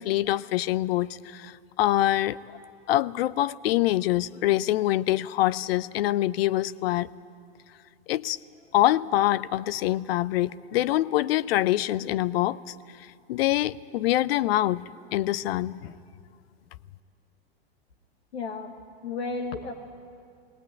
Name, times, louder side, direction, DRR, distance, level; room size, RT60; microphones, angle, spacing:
voice 1, 0.0-2.4 2.9-7.1 8.1-8.4 8.7-12.7 13.3-14.8 15.1-15.9, left 14 dB, 70° left, 20 dB, 0.6 m, -25 dB
voice 2, 18.3-18.7 19.0-19.7, left 4 dB, 85° left, 3 dB, 1.4 m, -32 dB
19.0 x 18.0 x 9.3 m, 2.4 s
hypercardioid pair, 105°, 31 cm